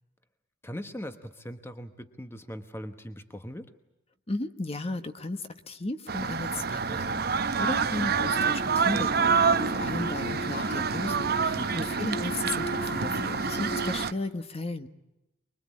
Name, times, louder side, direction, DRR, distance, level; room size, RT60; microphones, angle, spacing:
voice 1, 0.6-3.7 11.6-12.0, equal, 15° left, 8 dB, 1.0 m, -40 dB
voice 2, 4.3-14.9, left 2 dB, 30° left, 9 dB, 1.3 m, -35 dB
sound 1, 6.1-14.1, right 5 dB, 55° right, 0.9 m, -27 dB
sound 2, 8.2-13.9, equal, 55° left, 1.6 m, -38 dB
24.5 x 22.0 x 8.7 m, 0.95 s
head